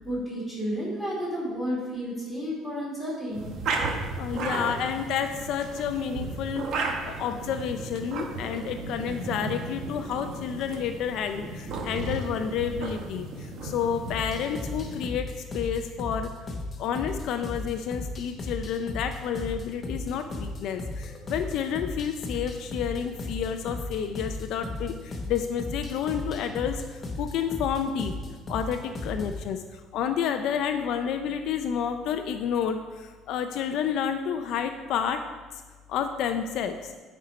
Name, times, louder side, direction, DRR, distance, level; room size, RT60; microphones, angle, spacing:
voice 1, 0.0-3.5 4.5-4.6, equal, 5° right, -6 dB, 2.5 m, -31 dB
sound 1, 3.3-15.1, right 3 dB, 45° right, 1.0 m, -34 dB
voice 2, 4.1-16.3 16.8-28.1 28.5-35.2 35.9-36.9, left 8 dB, 55° left, 7 dB, 0.4 m, -30 dB
sound 2, 14.1-29.4, left 2 dB, 20° left, 0.9 m, -36 dB
9.3 x 4.3 x 5.1 m, 1.4 s
cardioid pair, 170°, 0 cm